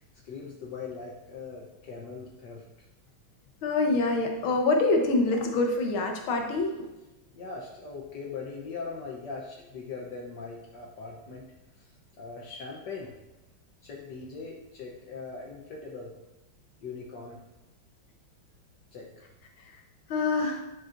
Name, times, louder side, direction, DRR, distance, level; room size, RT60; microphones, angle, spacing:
voice 1, 0.2-2.6 7.3-11.5 12.2-13.1 13.8-16.1 16.8-17.4 18.9-19.3, left 4 dB, 65° left, -2 dB, 1.4 m, -40 dB
voice 2, 3.6-6.7 20.1-20.6, left 3 dB, 80° left, 2 dB, 1.9 m, -25 dB
10.0 x 6.1 x 2.6 m, 1.0 s
omnidirectional pair, 2.2 m